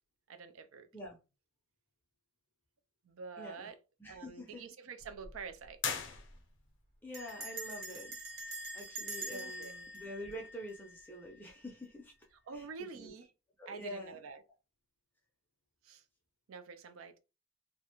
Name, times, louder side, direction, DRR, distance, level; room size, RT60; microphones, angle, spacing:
voice 1, 0.3-0.9 3.0-3.8 4.0-5.8 9.3-9.8 12.5-13.3 13.7-14.4 15.8-16.0 16.5-17.2, right 5 dB, 90° right, 0.4 m, -47 dB
voice 2, 3.4-3.7 4.0-4.6 7.0-8.2 8.7-12.1 12.5-12.6 12.9-13.1 13.6-14.1, equal, 10° left, 0.4 m, -46 dB
Bell, 5.0-5.4 5.6-5.7 6.0-6.3 7.1-11.2, right 1 dB, 65° right, 1.0 m, -44 dB
sound 1, 5.8-6.8, left 6 dB, 65° left, 0.5 m, -39 dB
2.4 x 2.1 x 2.9 m
head